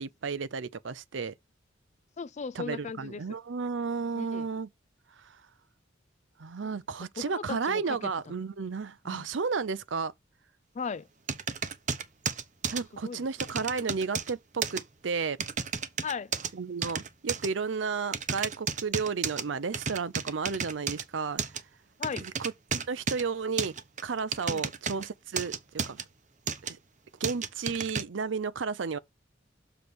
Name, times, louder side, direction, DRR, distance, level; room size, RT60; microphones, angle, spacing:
voice 1, 0.0-1.3 2.6-4.7 6.4-10.1 12.7-15.4 16.5-21.4 22.2-23.7 24.0-25.5 25.9-26.0 26.7-26.8 27.2-29.0, right 5 dB, 75° right, 0.6 m, -33 dB
voice 2, 2.2-3.2 4.1-4.5 7.2-8.0 9.0-9.3 10.7-11.1 13.0-13.3 13.8-13.9 16.0-16.3 22.0-22.3 24.5-24.7, left 5 dB, 40° left, 0.4 m, -37 dB
sound 1, 11.3-12.8 13.4-14.3 14.6-14.8 15.4-16.5 16.8-17.5 18.1-19.4 19.7-21.0 21.4-21.6 22.0-23.2 23.6-25.1 25.4-26.0 26.5-26.7 27.2-28.0, right 6 dB, 40° right, 0.8 m, -32 dB
6.9 x 3.3 x 6.0 m
head